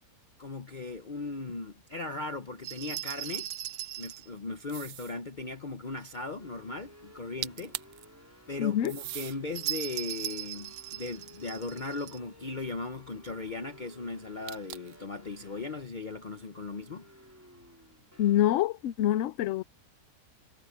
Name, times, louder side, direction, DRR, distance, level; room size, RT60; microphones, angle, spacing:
voice 1, 0.4-3.5 4.0-7.7 8.5-17.1, left 3 dB, 35° left, 0.8 m, -38 dB
sound 1, 2.6-4.3 9.5-12.2, right 12 dB, 85° right, 1.6 m, -38 dB
sound 2, 4.7-5.2 7.2-7.3 7.4-8.0 8.8-9.4 10.1-11.5 14.5-15.0, right 13 dB, 65° right, 0.8 m, -41 dB
sound 3, 6.4-18.5, equal, 10° right, 4.9 m, -55 dB
voice 2, 8.6-8.9 18.2-19.6, left 12 dB, 65° left, 0.8 m, -26 dB
omnidirectional pair, 1.7 m